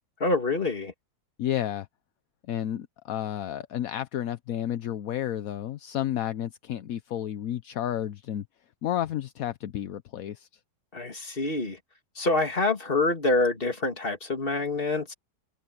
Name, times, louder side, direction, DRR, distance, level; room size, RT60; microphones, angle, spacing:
voice 1, 0.2-0.9 10.9-11.8 12.2-15.1, left 2 dB, 30° left, 2.7 m, -26 dB
voice 2, 1.4-1.9 2.5-8.4 8.8-10.5, left 11 dB, 60° left, 1.0 m, -31 dB
omnidirectional pair, 2.0 m